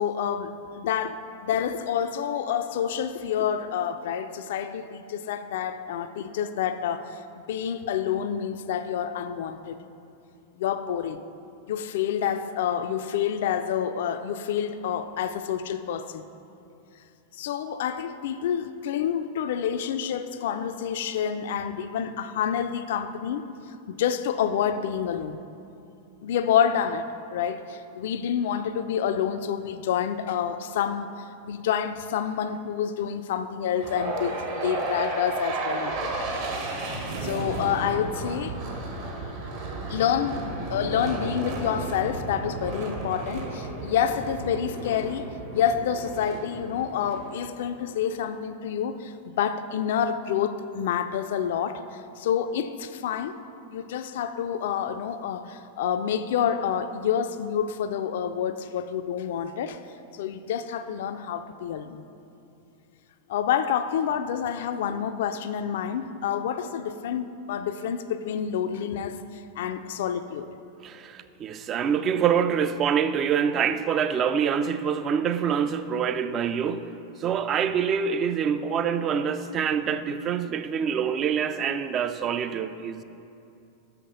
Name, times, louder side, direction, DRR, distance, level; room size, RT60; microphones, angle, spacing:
voice 1, 0.0-7.2 7.5-9.8 10.6-11.2 11.7-16.2 17.4-23.5 23.9-25.4 26.2-31.1 31.5-36.3 37.2-38.6 39.9-51.8 52.2-53.4 53.7-59.8 60.1-62.0 63.3-70.5, left 8 dB, 55° left, 10 dB, 0.3 m, -28 dB
sound 1, 33.7-47.9, right 2 dB, 50° right, 1.1 m, -33 dB
voice 2, 70.8-76.9 77.2-83.0, right 7 dB, 30° right, 11 dB, 0.3 m, -26 dB
6.5 x 5.7 x 5.1 m, 2.7 s
figure-of-eight pair, 90°, 0 cm